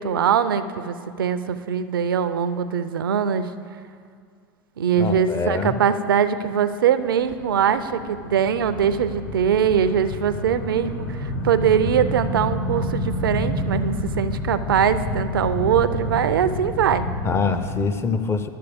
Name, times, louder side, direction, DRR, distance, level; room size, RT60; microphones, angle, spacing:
voice 1, 0.0-3.5 4.8-17.1, right 8 dB, 80° right, 12 dB, 0.4 m, -22 dB
voice 2, 5.0-5.8 17.2-18.5, left 4 dB, 20° left, 9 dB, 0.6 m, -24 dB
sound 1, 7.0-17.8, left 1 dB, 70° left, 0.9 m, -29 dB
12.0 x 6.7 x 3.5 m, 2.2 s
hypercardioid pair, 85°, 11 cm